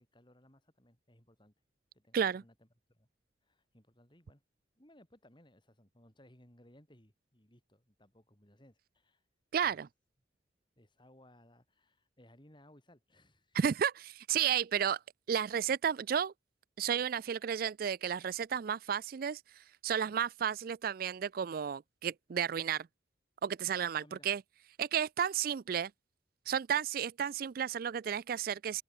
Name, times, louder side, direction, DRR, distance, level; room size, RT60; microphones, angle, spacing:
voice 1, 0.0-1.5 1.9-3.1 3.4-4.4 4.8-9.2 9.6-9.8 10.8-13.6 24.0-24.3, left 1 dB, 25° left, 6.4 m, -62 dB
voice 2, 9.5-9.9 13.5-15.0 15.3-16.3 16.8-19.4 19.8-22.9 23.4-24.4 24.8-25.9 26.5-28.8, right 8 dB, 50° right, 0.4 m, -32 dB
head